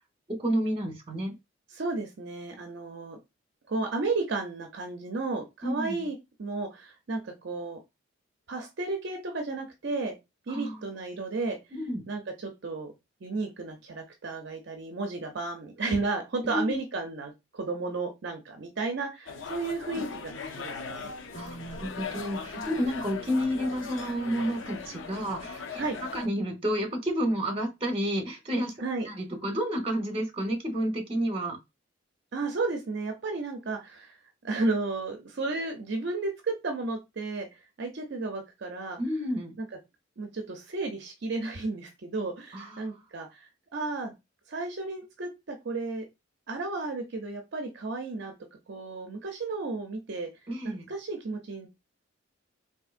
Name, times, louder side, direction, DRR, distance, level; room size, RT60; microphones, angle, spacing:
voice 1, 0.3-1.3 5.6-6.1 10.5-10.9 11.7-12.0 16.4-16.8 21.3-28.7 29.0-31.6 39.0-39.5 42.5-42.9 50.5-50.9, equal, 30° right, 3 dB, 0.9 m, -30 dB
voice 2, 1.7-3.2 3.7-7.8 8.5-10.1 10.5-11.6 12.1-12.9 13.2-21.1 25.8-26.0 28.8-29.1 32.3-37.5 37.8-39.0 39.6-39.7 40.2-44.1 44.5-46.0 46.5-48.3 48.7-50.3 50.6-51.7, right 3 dB, 60° right, 4 dB, 0.6 m, -33 dB
sound 1, 19.3-26.3, left 4 dB, 75° left, 0.6 m, -39 dB
3.6 x 2.7 x 2.4 m, 0.23 s
head